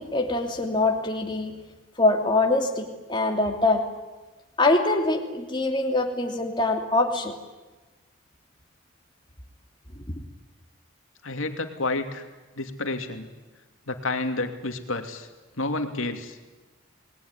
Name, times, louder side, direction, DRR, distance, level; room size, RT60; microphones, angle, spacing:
voice 1, 0.0-1.5 2.0-3.8 4.6-7.3, left 2 dB, 20° left, 2 dB, 2.8 m, -24 dB
voice 2, 11.2-12.3 12.6-13.3 13.9-15.3 15.6-16.4, left 2 dB, 80° left, 6 dB, 2.8 m, -30 dB
28.5 x 20.5 x 9.8 m, 1.2 s
head